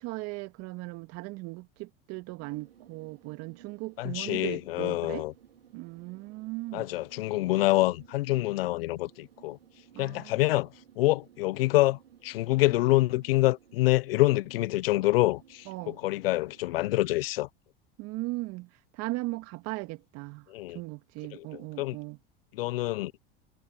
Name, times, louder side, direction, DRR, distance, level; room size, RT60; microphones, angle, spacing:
voice 1, 0.0-5.3 5.7-6.9 9.9-10.3 15.7-16.0 18.0-20.5 20.7-22.2, right 22 dB, 55° right, 2.1 m, -38 dB
sound 1, 2.4-17.3, right 10 dB, 90° right, 3.7 m, -57 dB
voice 2, 4.0-5.3 6.7-9.6 10.0-10.7 11.0-17.5 20.5-20.8 21.3-22.0 22.5-23.1, left 18 dB, 75° left, 0.7 m, -26 dB
hypercardioid pair, 90°, 29 cm